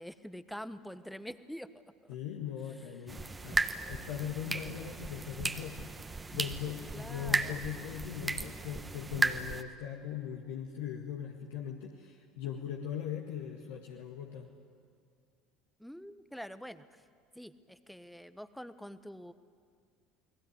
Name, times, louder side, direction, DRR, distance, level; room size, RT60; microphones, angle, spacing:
voice 1, 0.0-2.1 6.9-7.6 15.8-17.0 17.3-19.3, equal, ahead, 13 dB, 1.3 m, -46 dB
voice 2, 2.1-5.9 6.3-14.5, left 9 dB, 65° left, 1 dB, 1.9 m, -40 dB
sound 1, 3.1-9.6, right 3 dB, 20° right, 1.4 m, -35 dB
29.5 x 20.0 x 9.7 m, 2.2 s
figure-of-eight pair, 65°, 0 cm